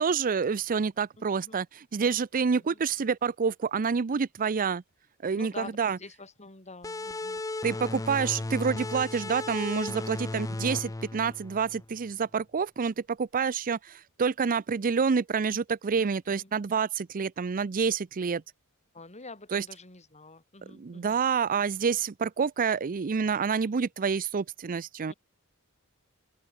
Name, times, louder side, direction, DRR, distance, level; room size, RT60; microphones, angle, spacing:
voice 1, 0.0-4.8 5.2-6.0 7.6-18.4 19.5-19.7 20.7-25.1, right 6 dB, 40° right, 0.5 m, -28 dB
voice 2, 5.3-7.4 9.9-10.5 15.9-16.5 18.9-21.2 25.1-25.2, left 3 dB, 30° left, 7.1 m, -47 dB
sound 1, 6.8-12.1, left 2 dB, 15° left, 0.5 m, -35 dB
open air
head